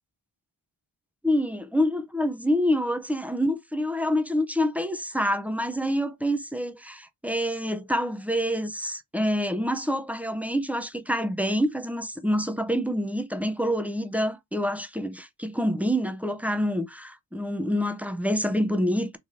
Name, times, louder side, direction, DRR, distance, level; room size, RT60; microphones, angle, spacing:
voice 1, 1.2-19.2, equal, 5° right, 0.6 m, -27 dB
3.2 x 2.6 x 3.7 m
cardioid pair, 40°, 47 cm